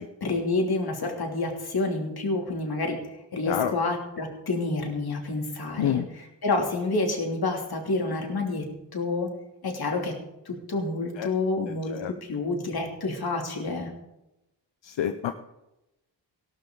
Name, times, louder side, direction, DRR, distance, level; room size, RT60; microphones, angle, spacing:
voice 1, 0.0-3.0 3.3-6.0 6.4-8.6 8.9-9.3 9.6-10.1 10.5-13.9, left 3 dB, 55° left, 1 dB, 3.1 m, -28 dB
voice 2, 11.7-12.1 14.8-15.3, left 10 dB, 80° left, 8 dB, 0.8 m, -28 dB
17.0 x 12.0 x 3.9 m, 0.92 s
wide cardioid pair, 135°, 44 cm